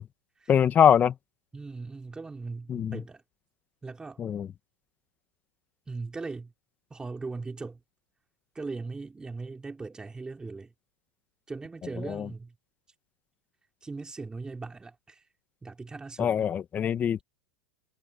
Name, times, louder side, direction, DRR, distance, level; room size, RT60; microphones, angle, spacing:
voice 1, 0.5-1.1 2.7-3.0 4.2-4.5 12.0-12.3 16.2-17.2, left 8 dB, 30° left, 1.5 m, -23 dB
voice 2, 1.5-3.2 3.8-4.2 5.9-6.5 6.9-7.8 8.5-10.7 11.5-12.5 13.8-15.3 15.6-16.5, right 3 dB, 15° right, 3.7 m, -39 dB
hypercardioid pair, 105°, 6 cm